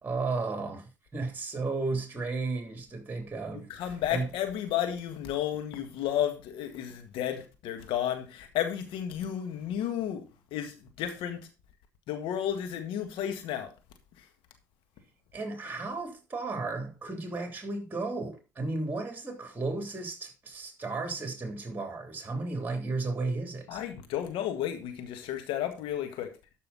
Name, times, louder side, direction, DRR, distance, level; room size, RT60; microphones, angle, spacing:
voice 1, 0.0-3.7 4.1-4.3 15.3-23.8, right 3 dB, 20° right, 3.2 m, -34 dB
voice 2, 3.5-11.5 12.1-13.7 23.7-26.3, left 10 dB, 65° left, 1.7 m, -32 dB
12.5 x 5.5 x 4.1 m
hypercardioid pair, 55°, 9 cm